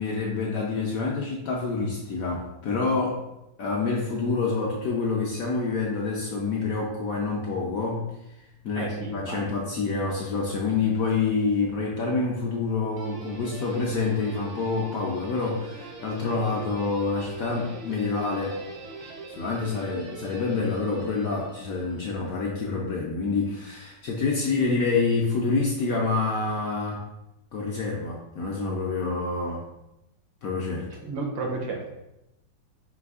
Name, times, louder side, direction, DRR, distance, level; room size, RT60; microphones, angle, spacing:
voice 1, 0.0-3.2 3.6-8.0 8.6-18.6 19.4-27.0 27.5-29.6 30.4-30.9, left 4 dB, 70° left, -2 dB, 0.8 m, -27 dB
voice 2, 8.8-9.6 31.0-31.8, right 3 dB, 85° right, 2 dB, 1.5 m, -32 dB
Guitar, 12.9-22.3, right 3 dB, 70° right, 0.7 m, -42 dB
5.2 x 3.3 x 2.3 m, 0.92 s
omnidirectional pair, 2.0 m